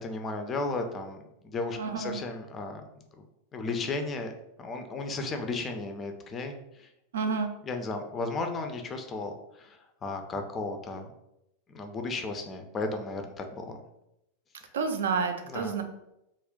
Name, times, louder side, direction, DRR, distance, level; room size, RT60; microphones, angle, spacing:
voice 1, 0.0-2.8 3.5-4.3 4.6-6.9 7.7-9.8 10.0-11.1 11.7-13.8 15.5-15.7, left 3 dB, 25° left, 5 dB, 0.4 m, -34 dB
voice 2, 1.8-2.2 7.1-7.5 14.7-15.8, right 5 dB, 60° right, 7 dB, 0.3 m, -29 dB
2.4 x 2.1 x 3.6 m, 0.86 s
figure-of-eight pair, 90°, 0 cm